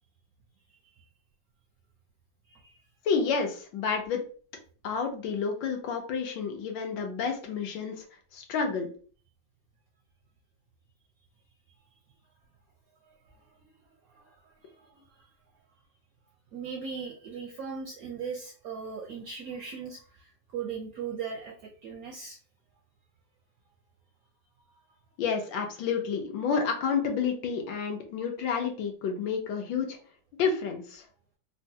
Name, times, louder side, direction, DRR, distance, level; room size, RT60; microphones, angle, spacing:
voice 1, 3.0-4.2 4.8-8.0 8.3-8.9 25.2-30.0 30.4-31.0, left 6 dB, 75° left, 3 dB, 1.3 m, -30 dB
voice 2, 14.1-15.3 16.5-22.4, right 6 dB, 70° right, -1 dB, 0.8 m, -39 dB
3.8 x 2.2 x 2.7 m, 0.42 s
omnidirectional pair, 2.1 m